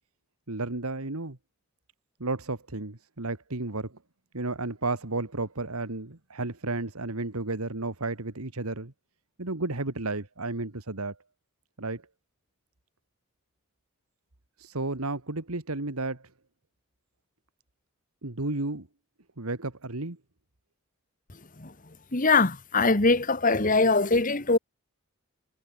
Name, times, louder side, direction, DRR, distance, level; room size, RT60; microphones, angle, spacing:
voice 1, 0.5-1.4 2.2-4.0 4.3-8.9 9.4-11.2 11.8-12.0 14.6-16.3 18.2-18.9 19.4-20.2, right 2 dB, 85° right, 2.1 m, -32 dB
voice 2, 22.1-24.6, left 3 dB, 40° left, 1.7 m, -22 dB
head